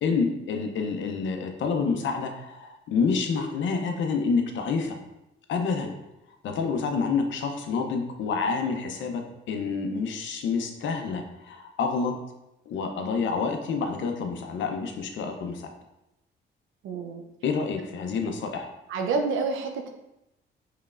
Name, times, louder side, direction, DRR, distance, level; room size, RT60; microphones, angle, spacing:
voice 1, 0.0-5.0 5.5-5.9 6.4-9.2 9.5-12.1 12.7-15.7 17.4-18.7, left 5 dB, 70° left, 4 dB, 0.7 m, -28 dB
voice 2, 16.8-17.2 18.9-19.9, right 4 dB, 85° right, 4 dB, 0.6 m, -28 dB
4.8 x 3.2 x 2.4 m, 0.89 s
cardioid pair, 90°, 20 cm